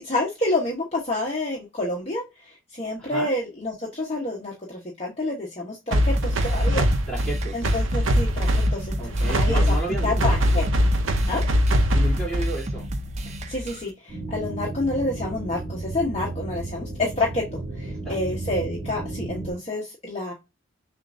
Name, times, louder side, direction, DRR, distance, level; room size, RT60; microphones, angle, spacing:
voice 1, 0.0-2.2 2.7-6.8 7.5-9.0 9.3-9.6 9.9-10.9 11.3-11.4 13.5-17.4 17.8-20.3, left 2 dB, 30° left, -2 dB, 1.0 m, -28 dB
voice 2, 3.0-3.3 7.1-7.7 9.0-10.5 11.9-12.9 17.9-18.2 18.5-18.6, right 2 dB, 5° left, -5 dB, 2.6 m, -32 dB
sound 1, 5.9-13.9, right 1 dB, 35° right, 0.5 m, -33 dB
sound 2, 5.9-12.7, equal, 80° right, 0.7 m, -22 dB
sound 3, 14.1-19.5, right 2 dB, 15° right, 2.4 m, -33 dB
6.5 x 2.6 x 2.5 m, 0.24 s
head